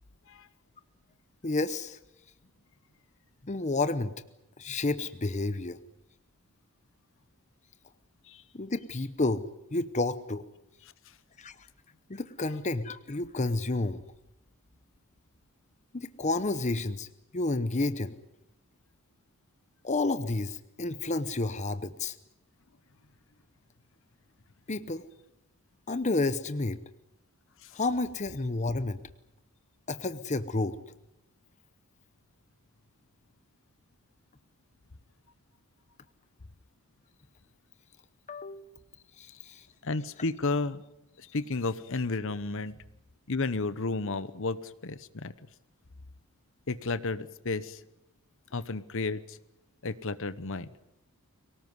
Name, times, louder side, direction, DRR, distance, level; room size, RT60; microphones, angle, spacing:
voice 1, 1.4-2.0 3.4-4.1 4.6-5.8 8.5-9.4 9.7-10.4 11.4-11.5 12.1-14.0 15.9-17.1 17.3-18.1 19.8-22.1 24.7-25.0 25.9-26.8 27.7-29.0 29.9-30.8 38.3-38.7 39.2-39.6, left 2 dB, 30° left, 13 dB, 0.9 m, -30 dB
voice 2, 39.8-40.8 41.2-42.8 43.3-45.3 46.7-47.8 48.5-49.4 49.8-50.7, left 3 dB, 60° left, 16 dB, 1.0 m, -32 dB
23.5 x 19.0 x 9.5 m, 0.87 s
head